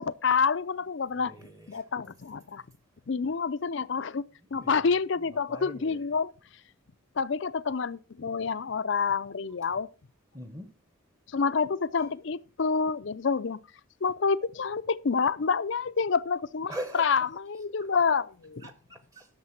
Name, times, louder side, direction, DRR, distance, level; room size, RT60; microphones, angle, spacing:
voice 1, 0.0-1.3 1.7-2.6 3.1-6.3 7.2-9.9 11.3-13.6 14.0-18.7, left 5 dB, 60° left, 0.5 m, -28 dB
voice 2, 1.2-1.8 4.6-4.8 5.2-6.0 10.3-10.7 12.0-12.1 16.7-17.1 18.6-19.3, right 1 dB, 15° right, 1.1 m, -42 dB
11.5 x 6.7 x 5.8 m
head